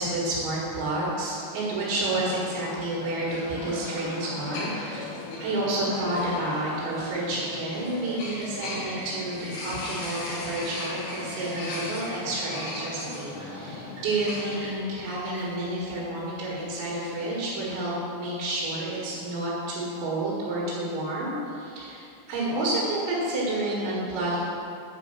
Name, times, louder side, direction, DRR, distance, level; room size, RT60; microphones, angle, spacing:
voice 1, 0.0-5.1 5.4-24.4, right 1 dB, 85° right, -6 dB, 4.2 m, -30 dB
sound 1, 2.0-14.7, left 2 dB, 70° left, 3.4 m, -37 dB
sound 2, 7.5-16.8, right 1 dB, 55° right, 1.7 m, -45 dB
8.7 x 5.1 x 6.6 m, 2.5 s
omnidirectional pair, 5.2 m